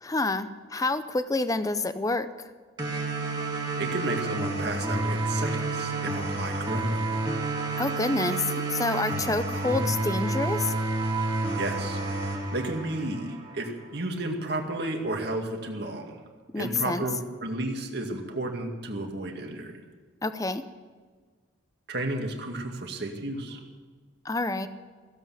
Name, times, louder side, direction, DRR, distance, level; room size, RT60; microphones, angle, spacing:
voice 1, 0.0-2.3 7.8-10.7 16.5-17.0 20.2-20.6 24.2-24.7, left 2 dB, 20° left, 11 dB, 0.6 m, -28 dB
sound 1, 2.8-13.8, right 2 dB, 25° right, 2.1 m, -30 dB
voice 2, 3.8-7.0 11.6-16.2 16.6-19.8 21.9-23.7, right 2 dB, 60° right, 2 dB, 2.2 m, -33 dB
16.0 x 8.0 x 9.3 m, 1.5 s
head